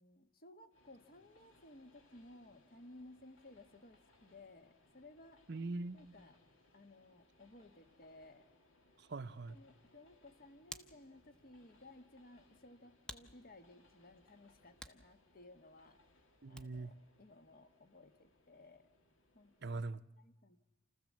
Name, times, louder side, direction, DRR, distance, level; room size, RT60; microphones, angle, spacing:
voice 1, 0.0-5.4 5.9-6.4 6.7-8.5 9.5-16.0 16.5-18.9 19.3-19.8 20.2-20.6, left 2 dB, 45° left, 1.2 m, -59 dB
Train, 0.7-19.8, left 2 dB, 80° left, 2.3 m, -70 dB
voice 2, 5.5-6.0 9.0-9.6 16.4-16.9 19.6-20.0, right 3 dB, 55° right, 0.7 m, -42 dB
Hands, 10.1-17.0, equal, 5° left, 0.7 m, -57 dB
29.0 x 14.0 x 7.4 m
head